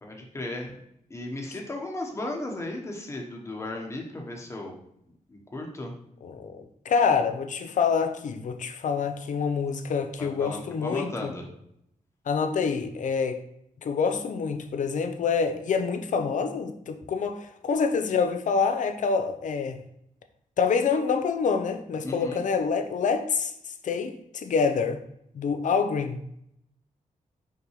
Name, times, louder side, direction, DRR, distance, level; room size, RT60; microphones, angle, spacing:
voice 1, 0.0-0.8 1.1-4.7 5.3-5.9 10.2-11.5 22.0-22.4, left 2 dB, 20° left, 0 dB, 1.1 m, -35 dB
voice 2, 6.2-6.6 6.8-11.3 12.3-13.4 13.8-19.8 20.6-23.5 23.8-25.0 25.3-26.2, left 5 dB, 70° left, 7 dB, 0.7 m, -26 dB
5.7 x 5.4 x 3.1 m, 0.74 s
wide cardioid pair, 175°, 14 cm